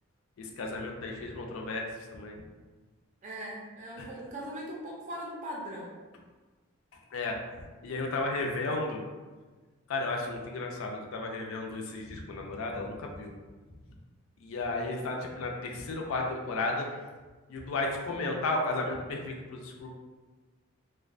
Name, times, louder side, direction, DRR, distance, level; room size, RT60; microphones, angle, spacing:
voice 1, 0.4-2.4 4.0-4.1 7.1-9.0 9.9-13.3 14.4-17.0 17.5-19.9, left 2 dB, 70° left, 1 dB, 0.4 m, -34 dB
voice 2, 3.2-5.9, equal, 35° right, -3 dB, 0.5 m, -40 dB
2.3 x 2.1 x 2.4 m, 1.3 s
head